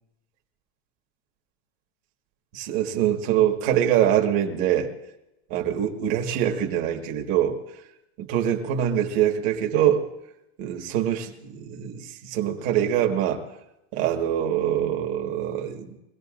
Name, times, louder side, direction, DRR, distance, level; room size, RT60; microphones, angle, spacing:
voice 1, 2.5-4.9 5.5-7.6 8.2-10.1 10.6-13.4 13.9-16.0, right 10 dB, 45° right, 3 dB, 1.8 m, -24 dB
24.0 x 16.5 x 2.6 m, 0.89 s
supercardioid pair, 160°, 32 cm